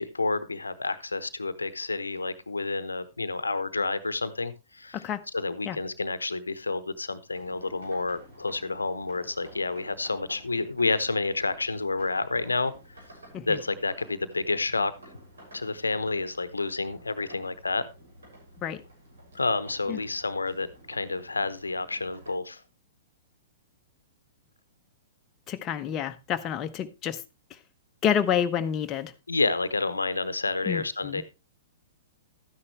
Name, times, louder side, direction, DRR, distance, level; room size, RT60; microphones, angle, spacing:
voice 1, 0.0-5.1 5.3-12.7 13.5-14.9 15.5-17.8 19.3-22.6 29.3-31.2, left 3 dB, 80° left, 0.8 m, -29 dB
sound 1, 7.3-22.3, right 1 dB, 70° right, 6.4 m, -51 dB
voice 2, 25.5-27.2 28.0-29.1 30.7-31.2, left 9 dB, 25° left, 0.8 m, -28 dB
12.5 x 9.8 x 3.2 m
figure-of-eight pair, 110°, 0 cm